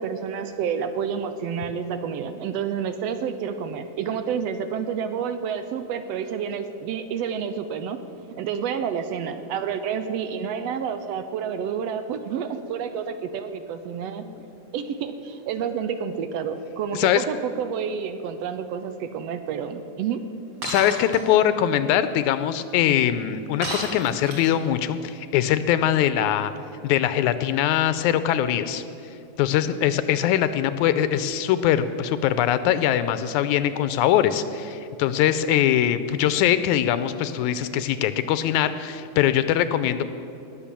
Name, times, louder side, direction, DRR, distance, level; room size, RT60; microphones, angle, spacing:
voice 1, 0.0-8.0 8.4-14.2 14.7-20.2, right 7 dB, 80° right, 9 dB, 1.5 m, -29 dB
voice 2, 16.9-17.2 20.6-26.5 26.8-28.8 29.4-40.0, left 11 dB, 85° left, 12 dB, 2.0 m, -22 dB
Shatter, 20.6-21.2 23.6-24.7, right 2 dB, 50° right, 3.1 m, -31 dB
18.5 x 7.0 x 7.4 m, 2.7 s
omnidirectional pair, 3.4 m